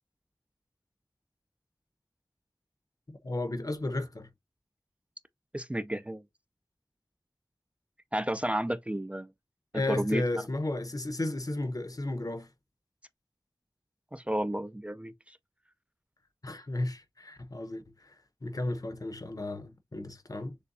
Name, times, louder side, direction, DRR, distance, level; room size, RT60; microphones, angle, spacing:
voice 1, 3.1-4.3 9.7-12.5 16.4-18.2 18.4-20.6, left 2 dB, 50° left, 0.8 m, -34 dB
voice 2, 5.5-6.2 8.1-9.3 9.7-10.2 14.1-15.4, right 1 dB, 15° right, 0.4 m, -32 dB
6.7 x 2.2 x 2.6 m
wide cardioid pair, 45°, 8 cm